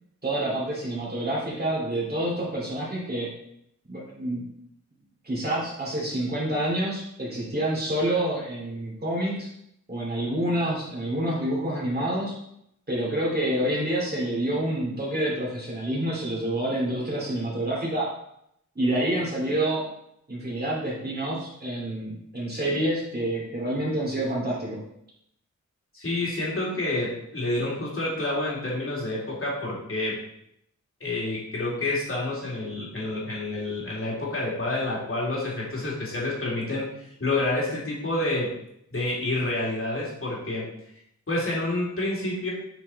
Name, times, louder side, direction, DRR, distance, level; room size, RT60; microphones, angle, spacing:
voice 1, 0.2-3.3 3.9-4.4 5.2-9.5 9.9-12.3 12.9-18.1 18.7-19.8 20.3-24.8, right 1 dB, 30° right, -5 dB, 2.7 m, -28 dB
voice 2, 25.9-30.2 31.0-38.5 38.9-40.7 41.3-42.5, left 2 dB, 45° left, -5 dB, 2.6 m, -28 dB
7.9 x 4.6 x 4.1 m, 0.75 s
wide cardioid pair, 105°, 30 cm